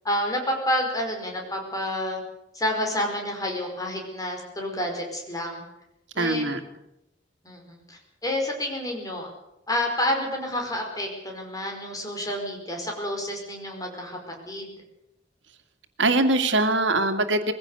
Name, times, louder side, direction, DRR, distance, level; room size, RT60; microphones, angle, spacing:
voice 1, 0.0-2.2 2.5-5.6 6.1-6.5 7.4-7.6 7.9-9.3 9.7-14.2 14.5-14.7, left 1 dB, 20° left, 1 dB, 5.0 m, -29 dB
voice 2, 6.2-6.6 16.0-17.5, right 2 dB, 85° right, 7 dB, 2.3 m, -22 dB
21.5 x 16.5 x 8.2 m, 0.85 s
head